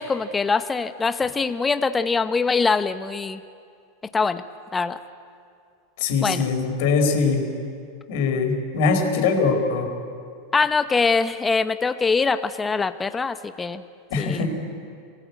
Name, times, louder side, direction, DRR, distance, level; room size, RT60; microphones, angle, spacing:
voice 1, 0.0-3.4 4.1-4.4 4.7-5.0 6.2-6.5 10.5-13.8 14.2-14.4, left 4 dB, 15° left, 10 dB, 1.1 m, -23 dB
voice 2, 6.0-7.4 8.1-9.9 14.1-14.5, left 4 dB, 65° left, 3 dB, 4.6 m, -22 dB
26.0 x 17.0 x 8.4 m, 2.3 s
hypercardioid pair, 100°, 0 cm